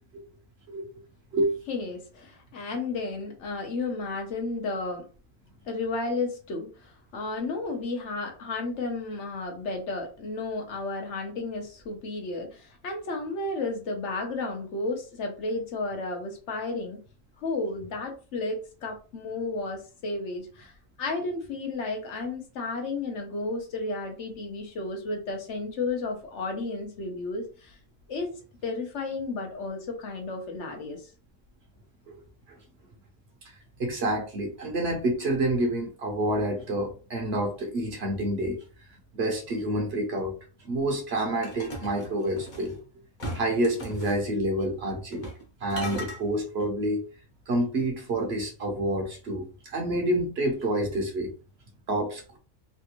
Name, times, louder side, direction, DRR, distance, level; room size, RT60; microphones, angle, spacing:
voice 1, 1.7-5.0 5.7-17.0 17.4-20.7 21.0-27.8 28.1-28.3 28.6-31.1, left 3 dB, 70° left, 1.1 m, -33 dB
voice 2, 33.8-38.6 39.1-40.4 40.7-42.8 43.3-45.2 45.6-47.0 47.5-51.3 51.9-52.4, right 1 dB, 60° right, 1.0 m, -28 dB
sound 1, 41.4-42.7 43.2-44.2 45.1-45.4 45.7-46.2, equal, 40° left, 1.0 m, -37 dB
3.3 x 2.4 x 2.9 m
omnidirectional pair, 1.3 m